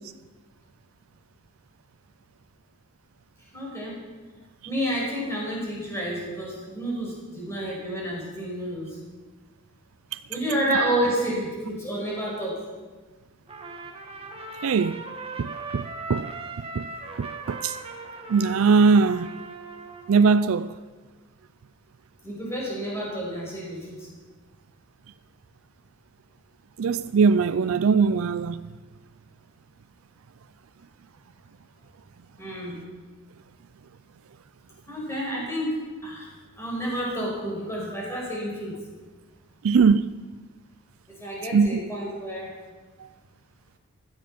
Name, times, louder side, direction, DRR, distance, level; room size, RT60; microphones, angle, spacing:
voice 1, 3.5-4.0 4.7-9.0 10.3-12.6 22.2-24.1 32.4-32.8 34.9-36.3 36.6-38.8 41.2-42.5, right 1 dB, 10° left, 5.8 m, -30 dB
Trumpet, 13.5-20.2, right 3 dB, 25° right, 1.6 m, -39 dB
voice 2, 14.6-15.0 15.4-16.3 16.8-16.9 17.2-17.8 18.3-19.3 20.1-20.7 26.8-28.6 39.6-40.1 41.5-41.8, right 5 dB, 70° right, 0.4 m, -21 dB
16.5 x 12.5 x 5.9 m
head